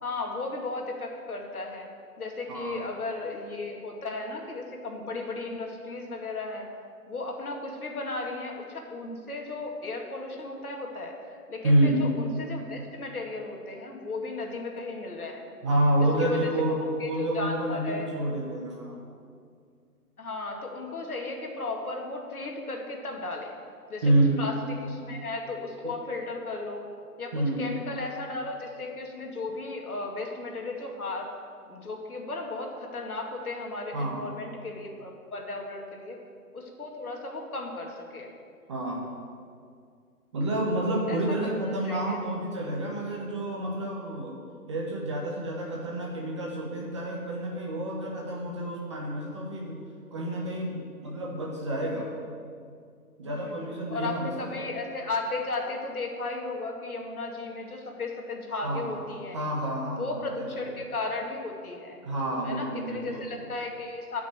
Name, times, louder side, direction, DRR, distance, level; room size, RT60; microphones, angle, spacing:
voice 1, 0.0-1.9 2.2-6.7 7.1-15.4 16.0-18.1 20.2-23.5 23.9-24.0 24.4-26.9 27.2-31.3 31.7-36.2 36.5-38.3 41.1-42.2 53.2-53.6 53.9-59.4 60.0-62.0 62.4-64.2, left 3 dB, 65° left, 1 dB, 2.4 m, -35 dB
voice 2, 2.5-2.8 11.6-12.0 15.6-19.0 24.0-24.4 27.3-27.7 33.9-34.2 38.7-39.0 40.3-44.3 44.7-49.8 50.1-52.1 53.2-54.6 58.6-59.0 59.3-60.0 60.4-60.7 62.0-63.4, right 1 dB, 20° right, -2 dB, 1.1 m, -28 dB
11.5 x 6.1 x 9.2 m, 2.2 s
figure-of-eight pair, 155°, 47 cm